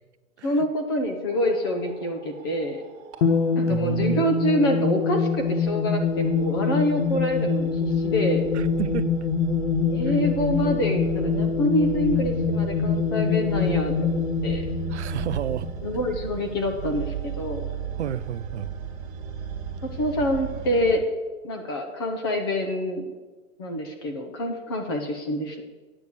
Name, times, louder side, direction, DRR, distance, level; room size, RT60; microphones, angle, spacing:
voice 1, 0.4-2.8 3.5-8.4 9.9-14.6 15.8-17.6 20.0-21.0 21.4-23.1 23.6-25.6, left 1 dB, 20° left, 4 dB, 0.6 m, -26 dB
sound 1, 1.3-20.9, right 7 dB, 40° right, 1.5 m, -37 dB
sound 2, 3.2-16.0, left 5 dB, 60° left, 1.0 m, -25 dB
voice 2, 3.7-4.3 8.5-9.1 10.0-10.2 14.9-15.7 18.0-18.7, right 11 dB, 55° right, 13 dB, 0.5 m, -31 dB
8.8 x 6.4 x 8.3 m, 1.3 s
hypercardioid pair, 165°, 40 cm